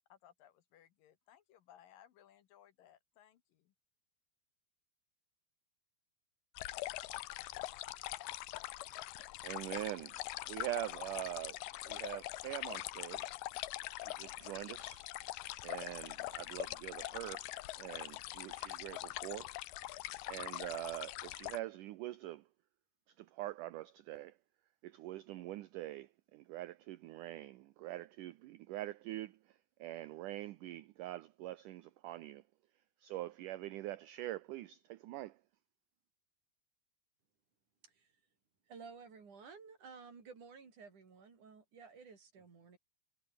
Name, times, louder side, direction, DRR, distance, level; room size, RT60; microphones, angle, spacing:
voice 1, 0.1-3.7, left 11 dB, 70° left, 3.0 m, -63 dB
sound 1, 6.6-21.6, left 16 dB, 85° left, 2.9 m, -43 dB
voice 2, 9.2-13.4 14.0-15.1 15.6-17.5 17.8-19.5 20.3-22.5 23.1-24.4 24.8-32.4 33.0-35.4, right 15 dB, 75° right, 2.0 m, -44 dB
voice 3, 38.7-42.8, right 5 dB, 55° right, 5.7 m, -54 dB
omnidirectional pair, 4.3 m